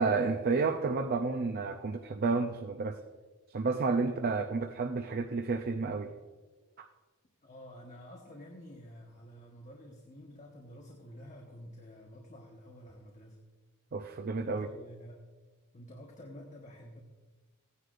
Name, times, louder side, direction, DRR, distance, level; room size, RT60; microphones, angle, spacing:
voice 1, 0.0-3.0 3.5-6.1 6.8-6.9 13.9-14.7, right 4 dB, 45° right, 6 dB, 0.5 m, -31 dB
voice 2, 7.4-13.4 14.4-15.3 15.7-17.0, equal, 35° left, 0 dB, 1.1 m, -50 dB
17.0 x 9.7 x 2.5 m, 1.3 s
head